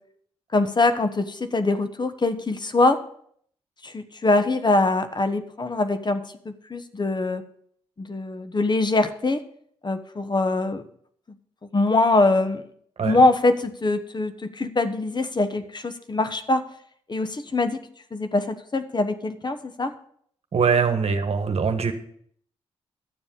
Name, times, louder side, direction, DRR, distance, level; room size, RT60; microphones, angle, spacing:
voice 1, 0.5-3.0 3.8-7.4 8.0-9.4 9.8-10.9 11.7-12.6 13.0-16.7 17.1-17.8 18.1-19.9, left 2 dB, 35° left, 10 dB, 1.1 m, -23 dB
voice 2, 20.5-21.9, right 5 dB, 55° right, 8 dB, 1.3 m, -22 dB
11.5 x 7.2 x 5.3 m, 0.63 s
supercardioid pair, 45°, 12 cm